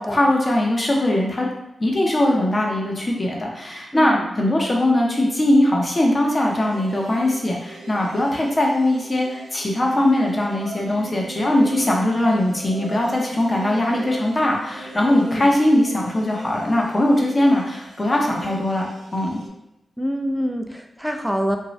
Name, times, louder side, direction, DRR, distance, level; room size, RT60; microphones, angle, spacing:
voice 1, 0.0-1.5 1.8-18.8 19.1-19.4, left 1 dB, 35° left, -1 dB, 0.7 m, -20 dB
voice 2, 3.9-4.2 15.0-15.5 20.0-21.6, equal, 5° right, 4 dB, 0.4 m, -26 dB
sound 1, 6.4-19.5, right 2 dB, 90° right, 0.5 m, -39 dB
2.7 x 2.2 x 3.0 m, 0.87 s
cardioid pair, 55°, 0 cm